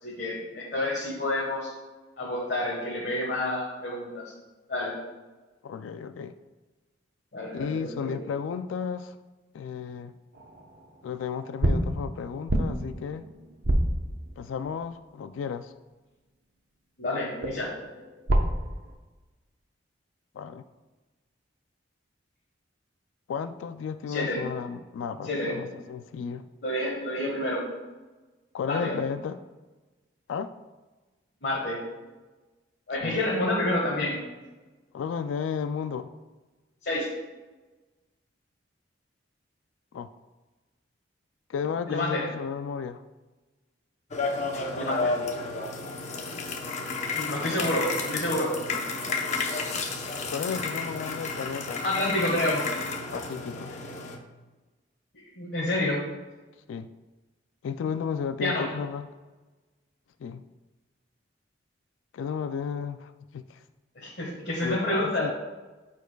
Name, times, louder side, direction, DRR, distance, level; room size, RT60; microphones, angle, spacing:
voice 1, 0.0-1.7 2.2-4.3 4.7-5.0 7.3-8.1 17.0-17.7 24.1-24.4 25.2-25.5 26.6-27.6 28.7-28.9 31.4-31.8 32.9-34.2 36.8-37.2 41.9-42.3 44.7-45.2 47.1-48.5 51.8-52.7 55.4-56.2 58.4-58.7 63.9-65.3, left 1 dB, 55° left, -4 dB, 1.4 m, -29 dB
voice 2, 5.6-6.3 7.5-9.2 9.5-10.1 11.0-13.3 14.4-15.7 20.3-20.6 23.3-26.4 28.5-29.4 30.3-30.5 33.0-33.2 34.9-36.1 39.9-40.1 41.5-43.0 50.3-51.8 53.1-53.7 56.7-56.9 57.6-59.1 60.2-60.4 62.1-63.6 64.6-65.3, left 6 dB, 85° left, 10 dB, 0.3 m, -33 dB
sound 1, 10.3-11.0 11.6-14.8 17.4-18.9, right 1 dB, 60° right, 0.9 m, -28 dB
sound 2, 44.1-54.2, left 3 dB, 40° left, 0.8 m, -32 dB
13.5 x 4.6 x 2.3 m, 1.2 s
head